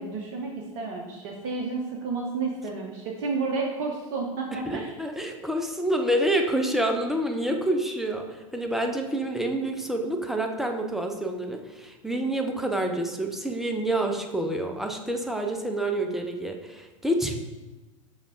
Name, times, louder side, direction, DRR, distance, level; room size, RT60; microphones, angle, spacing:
voice 1, 0.0-4.9, right 4 dB, 45° right, 1 dB, 0.6 m, -31 dB
voice 2, 4.5-8.3 8.5-17.4, right 1 dB, ahead, 3 dB, 0.3 m, -28 dB
6.3 x 3.4 x 2.4 m, 1.2 s
figure-of-eight pair, 90°, 17 cm